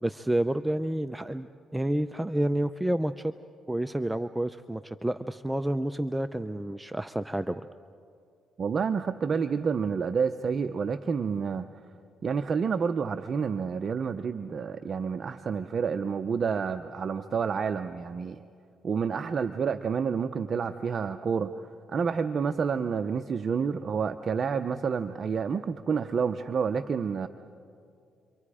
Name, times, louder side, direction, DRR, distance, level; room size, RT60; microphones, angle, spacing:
voice 1, 0.0-1.5 1.7-3.3 3.7-7.6, right 1 dB, 10° right, 10 dB, 0.5 m, -29 dB
voice 2, 8.6-11.7 12.2-18.4 18.8-21.5 21.9-27.3, right 6 dB, 45° right, 9 dB, 0.7 m, -29 dB
29.5 x 24.5 x 4.9 m, 2.4 s
cardioid pair, 90°, 0 cm